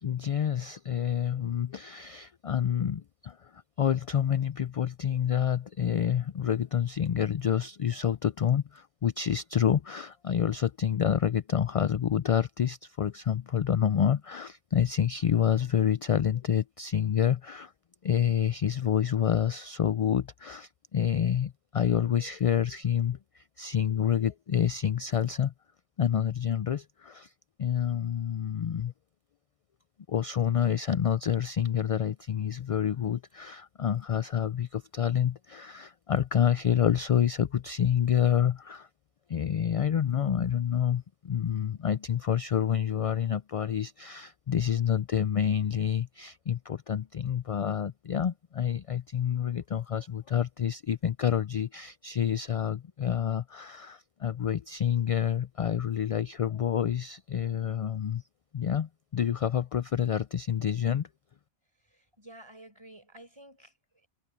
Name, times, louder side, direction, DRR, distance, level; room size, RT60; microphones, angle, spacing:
voice 1, 0.0-17.7 18.0-25.5 26.0-27.3 27.6-28.9 30.1-38.9 39.3-58.2 58.5-61.1, left 9 dB, 55° left, 0.4 m, -28 dB
voice 2, 61.8-64.1, right 1 dB, 25° right, 4.8 m, -52 dB
omnidirectional pair, 1.1 m